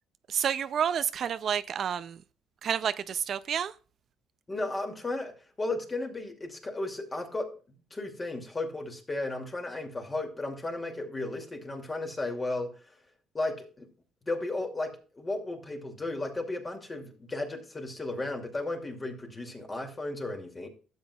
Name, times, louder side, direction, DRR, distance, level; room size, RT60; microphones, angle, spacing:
voice 1, 0.3-2.2 2.6-3.7, right 8 dB, 55° right, 0.4 m, -29 dB
voice 2, 4.5-7.5 7.9-12.7 13.3-13.9 14.2-20.7, left 2 dB, 25° left, 2.4 m, -34 dB
12.5 x 7.9 x 2.3 m
cardioid pair, 95°, 0 cm